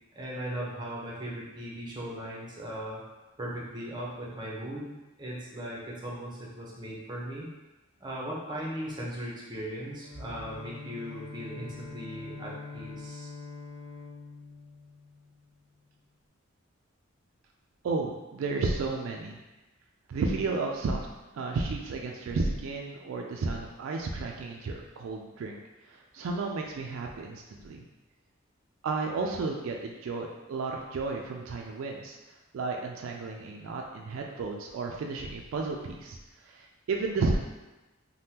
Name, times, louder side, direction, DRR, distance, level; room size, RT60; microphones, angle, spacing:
voice 1, 0.1-3.0 3.4-7.5 8.0-13.3, right 1 dB, 20° right, -4 dB, 0.6 m, -38 dB
Bowed string instrument, 9.9-15.6, left 4 dB, 55° left, 0.3 m, -44 dB
voice 2, 17.8-19.4 20.1-21.1 21.3-25.6 25.9-27.9 28.8-32.2 32.5-36.2 36.4-37.4, right 3 dB, 70° right, 1 dB, 0.3 m, -32 dB
3.4 x 2.1 x 2.8 m, 1.1 s
head